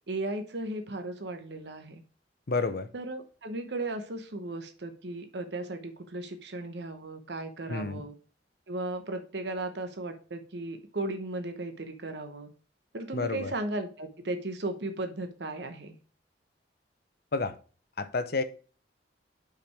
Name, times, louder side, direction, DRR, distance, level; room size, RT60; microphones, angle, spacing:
voice 1, 0.1-2.0 2.9-8.1 8.7-12.5 12.9-15.9, right 2 dB, 70° right, 0.9 m, -36 dB
voice 2, 2.5-2.9 7.7-8.0 13.1-13.5 17.3-17.6 18.0-18.4, left 3 dB, 60° left, 0.7 m, -30 dB
5.6 x 5.1 x 4.6 m
head